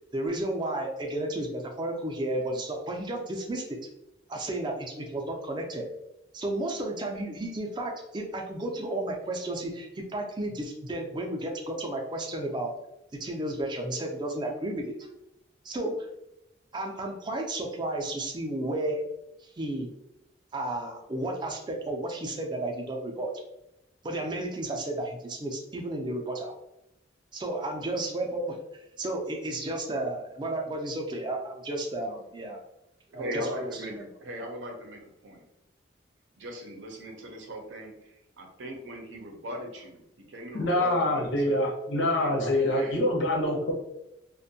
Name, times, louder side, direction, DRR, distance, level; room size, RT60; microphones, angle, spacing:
voice 1, 0.1-3.8 4.3-5.9 6.3-12.7 13.2-15.1 15.6-16.0 16.7-19.0 19.6-19.9 20.5-23.3 24.0-26.6 27.3-28.6 29.0-32.6 33.2-34.1, right 1 dB, 25° right, 2 dB, 0.4 m, -32 dB
voice 2, 33.1-35.4 36.4-41.6 42.2-43.0, equal, 85° right, 2 dB, 0.6 m, -39 dB
voice 3, 40.5-43.7, left 1 dB, 80° left, 0 dB, 0.7 m, -25 dB
2.5 x 2.1 x 2.6 m, 0.85 s
head